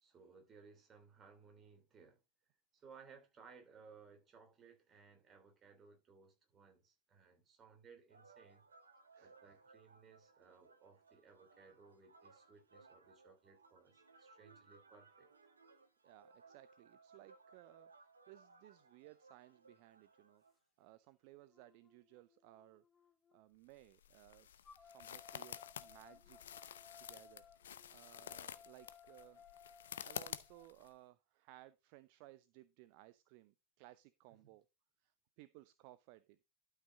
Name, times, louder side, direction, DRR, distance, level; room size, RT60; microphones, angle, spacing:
voice 1, 0.0-2.2 2.7-8.6 9.2-15.3 34.4-34.5, right 5 dB, 25° right, 3.0 m, -62 dB
sound 1, 8.1-20.5, right 4 dB, 75° right, 1.5 m, -65 dB
voice 2, 9.1-9.6 16.0-20.4 20.8-22.8 23.3-26.4 26.7-27.4 27.9-29.4 30.0-34.6 35.0-36.4, right 17 dB, 45° right, 0.6 m, -61 dB
sound 2, 20.8-20.9 21.5-23.4 24.6-30.7, left 6 dB, 20° left, 0.7 m, -62 dB
sound 3, 23.7-30.9, left 9 dB, 65° left, 0.6 m, -50 dB
12.0 x 5.7 x 3.8 m
figure-of-eight pair, 90°, 0 cm